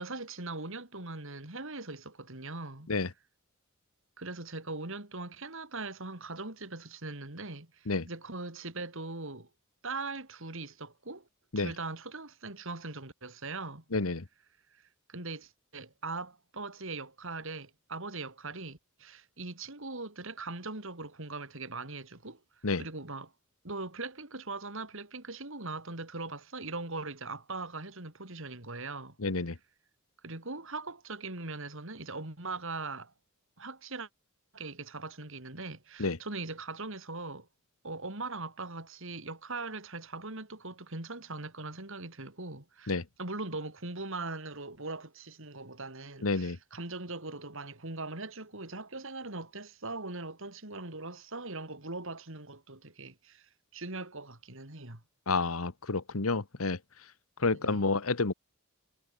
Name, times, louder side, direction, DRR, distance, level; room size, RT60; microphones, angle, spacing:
voice 1, 0.0-2.9 4.2-9.5 9.8-11.3 11.5-13.8 14.7-22.4 22.8-23.3 23.6-29.2 30.2-33.1 33.6-34.1 34.5-37.5 37.8-55.0 57.6-57.8, right 3 dB, 65° right, 3.5 m, -40 dB
voice 2, 13.9-14.2 22.6-22.8 29.2-29.6 36.0-36.2 42.9-43.0 46.2-46.6 55.3-56.8 57.4-58.3, left 3 dB, 75° left, 1.3 m, -29 dB
head